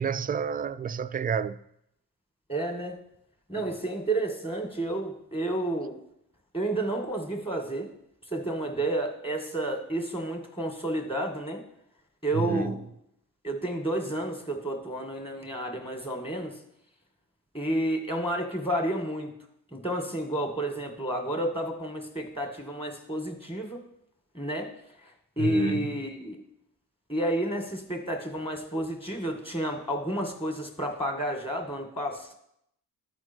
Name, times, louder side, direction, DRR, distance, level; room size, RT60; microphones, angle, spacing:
voice 1, 0.0-1.6 12.3-12.8 25.4-25.9, right 6 dB, 20° right, 0.3 m, -29 dB
voice 2, 2.5-3.0 3.5-6.0 6.5-7.9 8.3-11.6 12.2-12.8 13.4-16.6 17.5-19.3 19.7-23.8 24.3-24.7 25.0-26.4 27.1-32.3, right 1 dB, 10° left, 2.1 m, -31 dB
12.5 x 4.4 x 4.5 m
supercardioid pair, 60°, 44 cm